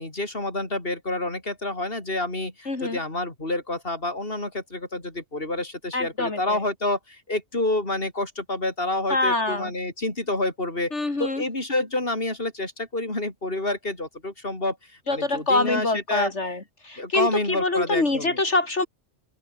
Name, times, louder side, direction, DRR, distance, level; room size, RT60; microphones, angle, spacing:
voice 1, 0.0-14.8 15.1-16.3 17.0-18.4, left 2 dB, 50° left, 5.5 m, -28 dB
voice 2, 2.7-3.0 5.9-6.6 9.1-9.7 10.9-11.4 15.1-18.9, left 2 dB, 70° left, 3.9 m, -25 dB
open air
omnidirectional pair, 1.2 m